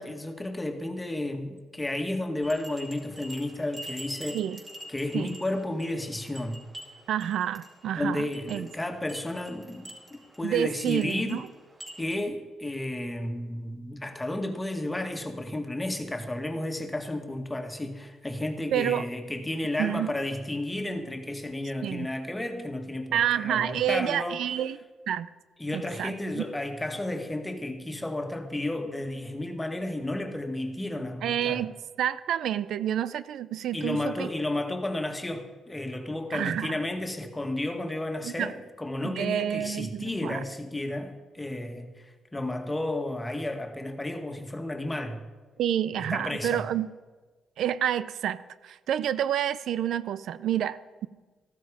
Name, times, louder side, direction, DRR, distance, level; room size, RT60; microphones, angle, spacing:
voice 1, 0.0-4.4 4.9-6.6 7.9-11.4 12.0-24.4 25.6-31.7 33.7-45.2 46.0-46.6, left 1 dB, 15° left, 1.8 m, -32 dB
sound 1, 2.4-12.2, right 1 dB, 20° right, 4.8 m, -46 dB
voice 2, 7.1-8.7 10.4-11.5 18.7-19.0 19.8-20.1 21.8-22.1 23.1-24.8 25.1-25.3 25.7-26.4 31.2-31.7 32.0-34.3 36.3-36.8 38.2-38.5 39.0-40.4 45.6-46.9 47.6-48.4 48.6-51.1, right 10 dB, 75° right, 0.5 m, -29 dB
14.5 x 12.5 x 5.0 m
cardioid pair, 90°, 0 cm